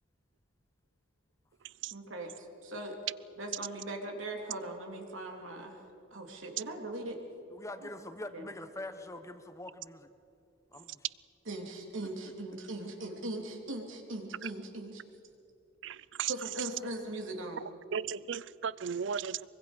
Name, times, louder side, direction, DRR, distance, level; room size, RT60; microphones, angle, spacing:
voice 1, 1.9-3.0 3.4-5.8 6.1-7.2 7.8-7.9 8.3-8.4 11.5-15.0 16.3-17.6, right 1 dB, 80° right, 3.2 m, -40 dB
voice 2, 7.5-10.1 10.7-11.0 12.2-12.3, left 1 dB, 15° left, 1.1 m, -44 dB
voice 3, 15.8-16.3 16.6-16.7 17.9-19.5, right 7 dB, 65° right, 0.5 m, -36 dB
24.0 x 24.0 x 5.3 m
head